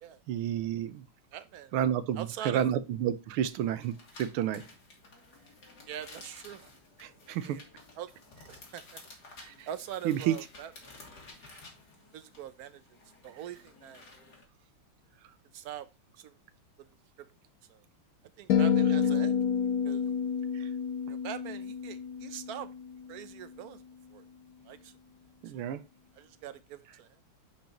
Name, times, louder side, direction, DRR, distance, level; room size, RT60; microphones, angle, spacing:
voice 1, 0.3-1.0 1.7-4.6 7.0-7.6 9.4-9.7 10.0-10.4 20.5-20.7 25.4-25.8, right 10 dB, 85° right, 1.6 m, -30 dB
voice 2, 1.3-1.7 2.1-2.7 5.9-6.7 7.4-7.6 8.0-8.1 8.5-9.0 9.7-10.9 12.1-12.8 13.2-14.1 15.5-15.9 16.2-16.4 16.8-16.9 17.7-17.8 18.4-19.4 19.8-20.0 21.1-22.7 23.1-23.8 24.1-24.2 24.6-24.9 25.5-25.7 26.1-27.2, right 10 dB, 70° right, 0.9 m, -43 dB
sound 1, 3.5-14.4, left 3 dB, 50° left, 2.6 m, -53 dB
sound 2, 18.5-22.8, left 7 dB, 90° left, 0.8 m, -28 dB
10.5 x 5.2 x 3.0 m
omnidirectional pair, 2.3 m